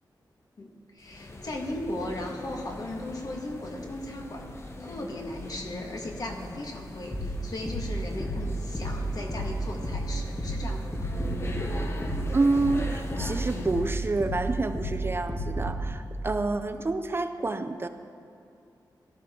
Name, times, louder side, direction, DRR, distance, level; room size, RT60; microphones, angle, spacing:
voice 1, 0.6-4.5 4.8-11.1, left 1 dB, 50° left, 1 dB, 1.9 m, -37 dB
sound 1, 1.0-14.0, left 2 dB, 35° left, 1.0 m, -40 dB
sound 2, 7.1-15.8, right 1 dB, 15° left, 3.0 m, -32 dB
voice 2, 12.3-17.9, right 3 dB, 30° right, 9 dB, 0.5 m, -28 dB
18.0 x 12.5 x 3.8 m, 2.5 s
wide cardioid pair, 130°, 8 cm